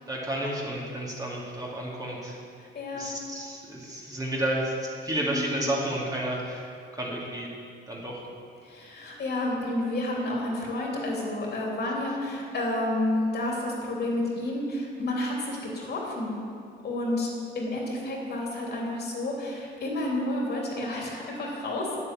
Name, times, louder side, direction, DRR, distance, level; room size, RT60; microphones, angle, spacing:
voice 1, 0.1-2.4 2.9-7.5 7.9-8.2, right 1 dB, 20° right, -4 dB, 2.5 m, -31 dB
voice 2, 2.6-3.2 5.2-5.5 8.6-16.5 16.8-17.3 17.5-22.0, left 1 dB, 55° left, -2 dB, 3.1 m, -30 dB
9.0 x 8.2 x 7.7 m, 2.3 s
cardioid pair, 90°, 20 cm